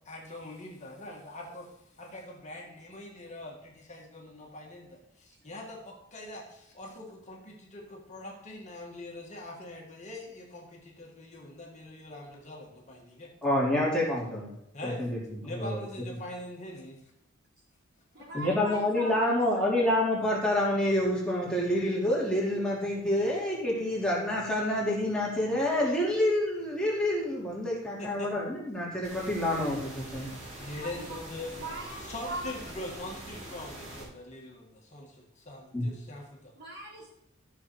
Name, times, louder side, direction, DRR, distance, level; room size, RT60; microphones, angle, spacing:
voice 1, 0.1-1.7 2.0-13.3 14.7-15.1 15.4-17.0 27.9-28.3 30.6-31.6 32.0-36.5, left 1 dB, 35° left, -1 dB, 1.7 m, -43 dB
voice 2, 13.4-14.5 14.8-15.2 15.5-15.8 18.3-30.3 35.7-35.9, left 1 dB, 5° left, -6 dB, 2.9 m, -28 dB
voice 3, 18.1-19.7 30.8-31.2 31.6-32.4 36.6-37.1, right 2 dB, 55° right, -4 dB, 3.9 m, -40 dB
sound 1, 29.0-34.0, right 1 dB, 35° right, 3.2 m, -44 dB
13.5 x 6.3 x 4.6 m, 0.77 s
head